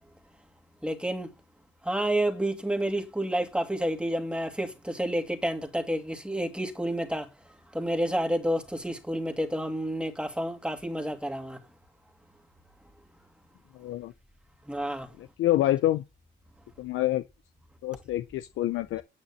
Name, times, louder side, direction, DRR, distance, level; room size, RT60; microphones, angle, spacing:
voice 1, 0.8-1.3 1.8-7.3 7.7-11.6 14.7-15.1, right 1 dB, 5° right, 2.4 m, -29 dB
voice 2, 13.8-14.1 15.4-16.0 16.8-17.2 17.8-19.0, left 14 dB, 85° left, 0.7 m, -26 dB
9.4 x 8.0 x 8.5 m
cardioid pair, 90°, 20 cm